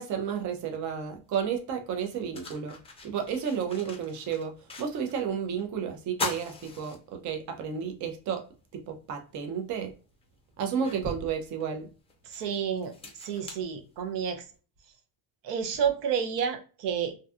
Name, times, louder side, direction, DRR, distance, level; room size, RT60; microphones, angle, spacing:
voice 1, 0.0-2.8 3.0-8.4 8.7-9.9 10.6-11.9, right 7 dB, 45° right, 0.5 m, -32 dB
sound 1, 1.3-1.4 1.9-5.3 5.6-5.7 6.1-7.6 8.0-8.1 9.5-9.6 10.2-14.4, left 3 dB, 15° left, 0.4 m, -40 dB
voice 2, 12.2-12.9 13.2-14.4 15.4-17.2, right 7 dB, 85° right, 0.7 m, -30 dB
2.6 x 2.2 x 2.3 m
cardioid pair, 145°, 41 cm